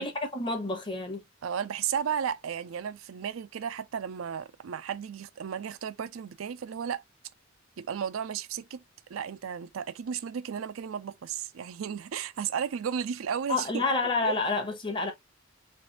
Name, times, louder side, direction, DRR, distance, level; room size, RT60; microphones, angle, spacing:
voice 1, 0.0-1.2 13.5-15.1, left 3 dB, 25° left, 0.9 m, -29 dB
voice 2, 1.4-7.0 7.8-8.8 9.1-13.9 14.2-14.3, right 7 dB, 80° right, 0.4 m, -34 dB
3.2 x 3.0 x 2.9 m
head